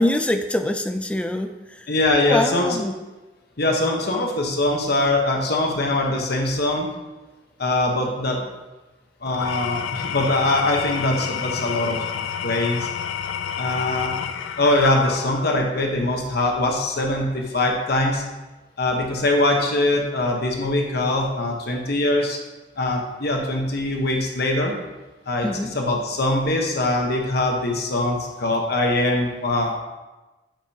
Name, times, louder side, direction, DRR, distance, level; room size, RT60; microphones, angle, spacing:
voice 1, 0.0-1.9 2.2-2.9 25.4-25.7, left 1 dB, 5° left, 7 dB, 0.3 m, -24 dB
voice 2, 1.9-2.8 3.6-6.9 7.6-8.5 9.2-12.9 13.6-14.1 14.6-18.2 18.8-22.4 22.8-24.7 25.3-25.5 25.7-29.8, left 2 dB, 55° left, 1 dB, 1.1 m, -22 dB
Engine / Tools, 9.3-15.7, left 8 dB, 80° left, 0.4 m, -30 dB
8.9 x 5.0 x 2.8 m, 1.1 s
head